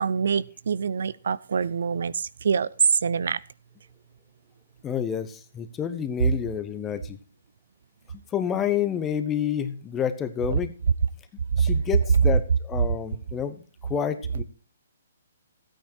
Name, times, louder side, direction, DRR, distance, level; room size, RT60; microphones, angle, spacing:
voice 1, 0.0-3.4 11.6-11.7, right 6 dB, 70° right, 20 dB, 0.6 m, -25 dB
voice 2, 4.8-7.2 8.3-10.7 11.6-13.6 13.9-14.4, left 8 dB, 15° left, 10 dB, 1.0 m, -29 dB
13.5 x 9.1 x 4.5 m, 0.36 s
hypercardioid pair, 145°, 0 cm